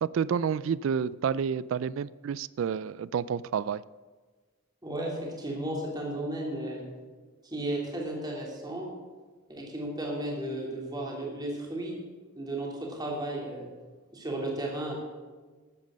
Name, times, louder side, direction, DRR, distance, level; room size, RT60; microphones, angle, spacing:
voice 1, 0.0-3.8, right 7 dB, 65° right, 20 dB, 0.3 m, -29 dB
voice 2, 4.8-6.8 7.5-8.9 9.5-12.0 12.3-13.7 14.1-15.0, right 1 dB, 20° right, -2 dB, 2.9 m, -34 dB
13.0 x 9.2 x 6.3 m, 1.4 s
head